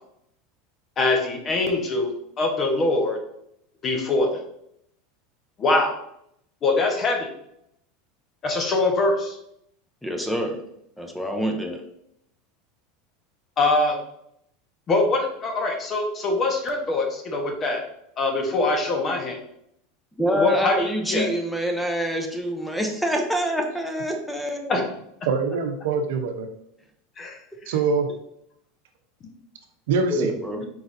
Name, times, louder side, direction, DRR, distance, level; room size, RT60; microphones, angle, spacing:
voice 1, 1.0-3.2 3.8-4.4 5.6-5.9 6.6-7.3 8.4-9.4 13.6-14.0 14.9-17.8 18.2-19.4 20.2-21.3 24.7-24.9 27.2-27.7, left 2 dB, 35° left, 2 dB, 1.1 m, -23 dB
voice 2, 10.0-10.6 11.0-11.8 20.2-24.8 30.1-30.6, equal, 5° left, 3 dB, 0.7 m, -26 dB
voice 3, 25.3-26.5 27.7-28.1 29.9-30.3, right 4 dB, 75° right, 6 dB, 0.8 m, -24 dB
4.7 x 3.9 x 2.7 m, 0.76 s
supercardioid pair, 110°, 0 cm